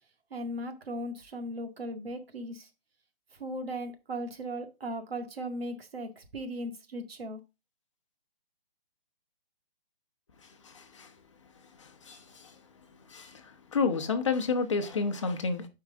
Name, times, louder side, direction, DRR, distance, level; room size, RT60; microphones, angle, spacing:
voice 1, 0.3-2.7 3.3-7.4, right 1 dB, 80° right, 2.0 m, -37 dB
voice 2, 10.6-11.1 11.8-12.5 13.1-15.7, left 4 dB, 30° left, 0.9 m, -31 dB
7.8 x 4.8 x 3.7 m
hypercardioid pair, 180°, 29 cm